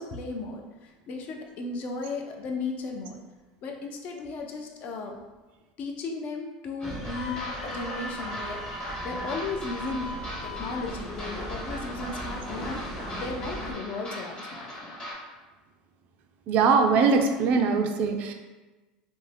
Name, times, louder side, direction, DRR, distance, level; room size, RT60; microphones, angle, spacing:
voice 1, 0.0-3.2 3.6-5.2 5.8-8.6 9.0-10.1 10.4-15.0, left 3 dB, 45° left, 2 dB, 0.4 m, -35 dB
sound 1, 6.8-15.1, equal, 30° left, 0.9 m, -39 dB
sound 2, 6.8-13.7, equal, ahead, 0.6 m, -39 dB
Wind instrument woodwind instrument, 7.1-10.8, left 2 dB, 70° left, 1.0 m, -41 dB
voice 2, 16.5-18.3, right 5 dB, 50° right, 5 dB, 0.4 m, -22 dB
2.5 x 2.1 x 3.2 m, 1.2 s
supercardioid pair, 115°, 3 cm